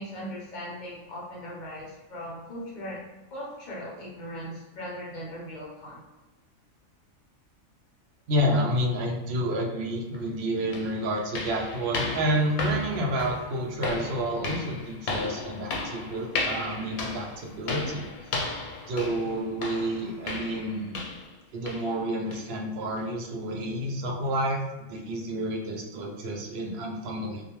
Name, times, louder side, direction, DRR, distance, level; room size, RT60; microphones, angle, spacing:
voice 1, 0.0-3.0 3.3-6.0, equal, 45° left, -5 dB, 0.7 m, -39 dB
voice 2, 8.3-18.4 18.9-21.0 21.5-24.6 24.9-27.4, equal, 65° right, 0 dB, 0.6 m, -29 dB
sound 1, 10.1-10.2 10.7-21.4 21.7-21.9 22.3-22.5 23.0-23.1 23.6-23.7, left 3 dB, 90° left, 1.0 m, -35 dB
2.4 x 2.1 x 2.9 m, 1.1 s
omnidirectional pair, 1.5 m